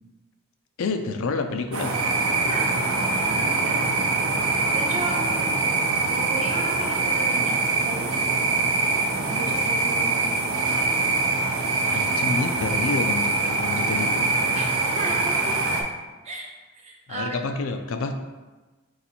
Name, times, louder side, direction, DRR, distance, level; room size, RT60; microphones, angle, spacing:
voice 1, 0.8-1.9 11.8-14.4 17.1-18.1, left 3 dB, 70° left, 6 dB, 0.4 m, -28 dB
sound 1, 1.7-15.8, right 3 dB, 75° right, 0.6 m, -23 dB
voice 2, 2.4-2.7 3.1-3.9 4.7-5.2 6.1-8.2 9.1-11.0 11.7-12.0 14.5-14.7 15.0-15.6 16.2-17.4, right 2 dB, 30° right, -1 dB, 0.6 m, -35 dB
4.1 x 2.6 x 4.2 m, 1.2 s
head